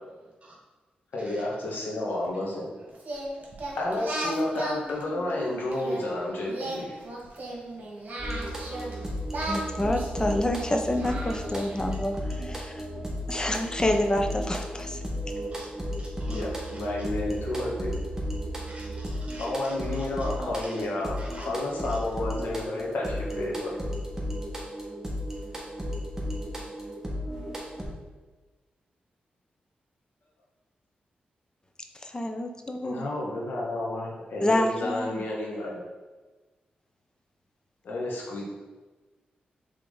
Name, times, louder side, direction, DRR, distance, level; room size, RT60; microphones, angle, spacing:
voice 1, 1.1-2.7 3.8-7.0 16.3-17.9 19.4-23.8 27.5-27.6 32.8-35.7 37.8-38.5, left 1 dB, 80° left, -3 dB, 1.5 m, -31 dB
Singing, 3.0-6.0 6.5-8.9 9.3-11.9, right 1 dB, 55° right, 1.7 m, -36 dB
voice 2, 3.4-3.8 7.0-7.4 7.7-7.9 9.1-9.5 11.7-12.0 12.6-13.0 13.7-13.9 15.1-17.1 18.4-20.3 20.6-20.9 21.2-21.5 21.9-22.0, right 1 dB, 40° right, -3 dB, 1.3 m, -51 dB
sound 1, 8.2-27.8, equal, 15° right, 1.5 m, -34 dB
voice 3, 9.4-12.8 13.3-15.0 32.0-33.0 34.4-35.2, left 1 dB, 25° left, 4 dB, 0.7 m, -28 dB
6.7 x 3.7 x 3.9 m, 1.3 s
cardioid pair, 70°, 3 cm